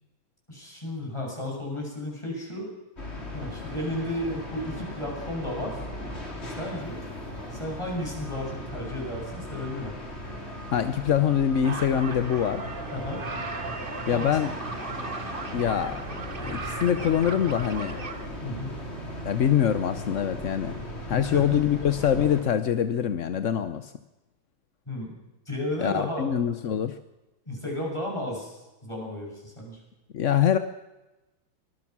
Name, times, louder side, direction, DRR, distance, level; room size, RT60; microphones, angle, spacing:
voice 1, 0.5-2.7 3.3-5.9 6.4-7.0 7.5-9.9 12.9-13.2 14.1-14.4 18.4-18.8 21.1-21.6 24.9-25.1 25.5-26.3 27.5-29.8, left 1 dB, 15° left, -1 dB, 7.6 m, -33 dB
sound 1, 3.0-22.4, equal, 30° left, 4.0 m, -38 dB
voice 2, 10.7-12.6 14.1-14.5 15.5-16.0 16.4-18.0 19.2-20.8 21.1-23.9 25.8-27.0 30.1-30.6, left 9 dB, 55° left, 11 dB, 0.8 m, -24 dB
sound 2, 11.6-18.3, right 3 dB, 25° right, 1.6 m, -37 dB
24.5 x 20.0 x 6.1 m, 1.0 s
omnidirectional pair, 2.2 m